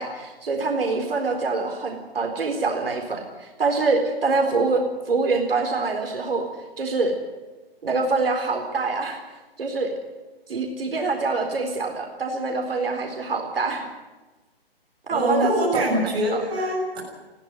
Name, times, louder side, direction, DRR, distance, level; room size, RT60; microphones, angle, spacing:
voice 1, 0.0-6.4 6.8-7.1 7.8-9.2 9.6-9.9 10.5-13.9 15.1-16.0 16.3-16.4, right 3 dB, 65° right, 3 dB, 4.3 m, -25 dB
voice 2, 15.1-17.0, equal, 15° right, -5 dB, 6.8 m, -24 dB
19.0 x 16.0 x 9.9 m, 1.2 s
hypercardioid pair, 170°, 31 cm